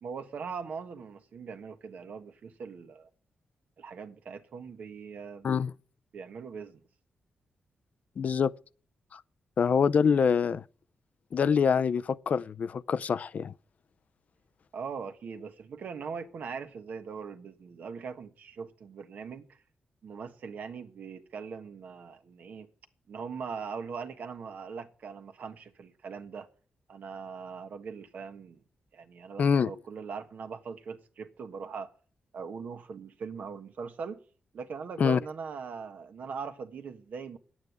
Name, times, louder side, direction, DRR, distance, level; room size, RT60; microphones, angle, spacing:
voice 1, 0.0-3.1 3.8-5.6 6.1-6.8 14.7-19.6 20.0-22.7 23.1-26.5 26.9-28.6 28.9-31.9 32.3-34.2 34.5-37.4, right 5 dB, 70° right, 1.4 m, -41 dB
voice 2, 8.2-8.5 9.1-9.2 9.6-10.6 11.3-13.5 29.4-29.7 35.0-35.2, left 6 dB, 60° left, 0.5 m, -25 dB
10.5 x 8.7 x 8.2 m
cardioid pair, 80°, 3 cm